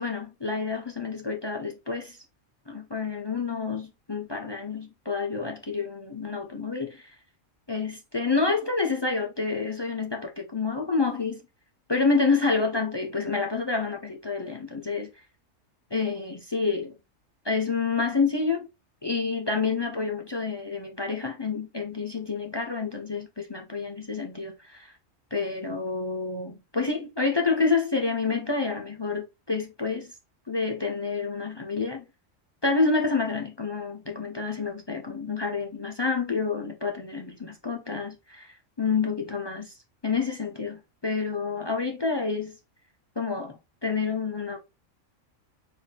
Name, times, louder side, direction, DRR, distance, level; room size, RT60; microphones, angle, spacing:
voice 1, 0.0-2.2 2.7-7.1 7.7-11.4 11.9-15.1 15.9-17.0 17.4-18.7 19.0-25.0 25.3-30.1 30.5-32.1 32.6-39.7 40.0-42.6 43.2-44.6, left 4 dB, 30° left, 0.5 m, -28 dB
4.5 x 3.5 x 3.4 m
omnidirectional pair, 1.3 m